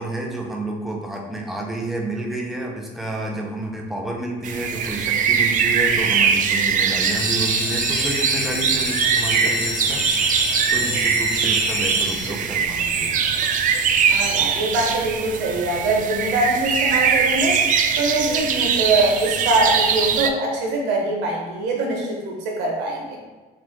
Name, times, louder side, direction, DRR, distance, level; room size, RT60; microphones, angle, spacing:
voice 1, 0.0-10.0 10.7-13.1, right 2 dB, ahead, 0 dB, 0.7 m, -30 dB
sound 1, 4.4-20.3, right 6 dB, 50° right, 0.4 m, -21 dB
sound 2, 7.0-12.6 13.2-13.7 14.1-14.2 14.5-14.6 15.0-15.1, left 4 dB, 50° left, 0.6 m, -28 dB
voice 2, 14.1-17.6 18.0-23.2, right 2 dB, 85° right, -1 dB, 1.1 m, -23 dB
4.2 x 2.5 x 4.5 m, 1.3 s
cardioid pair, 110°, 17 cm